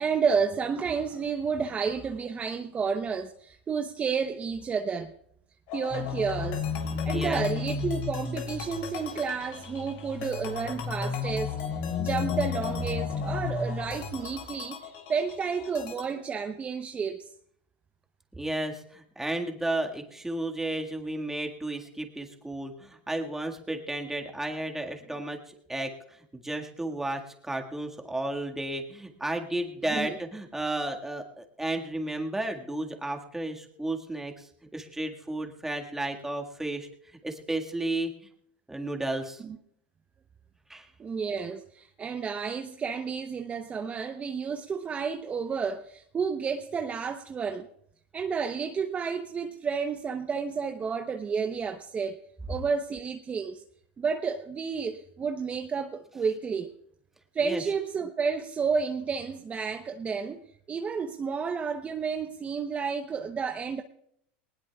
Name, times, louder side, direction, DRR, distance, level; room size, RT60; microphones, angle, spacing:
voice 1, 0.0-5.1 5.7-6.6 7.0-11.5 12.0-17.3 29.9-30.2 39.4-39.6 41.0-47.7 48.1-52.2 52.5-53.6 54.0-56.7 57.3-60.4 60.7-63.8, right 5 dB, 25° right, 6 dB, 0.8 m, -31 dB
sound 1, 5.7-16.0, left 9 dB, 60° left, 3.2 m, -40 dB
sound 2, 5.9-14.3, left 6 dB, 30° left, 4.9 m, -33 dB
voice 2, 7.1-7.5 18.4-36.9 37.2-38.1 38.7-39.4 40.7-40.9 57.4-57.6, right 1 dB, 5° right, 3 dB, 1.8 m, -33 dB
20.5 x 19.5 x 2.4 m, 0.71 s
hypercardioid pair, 105°, 6 cm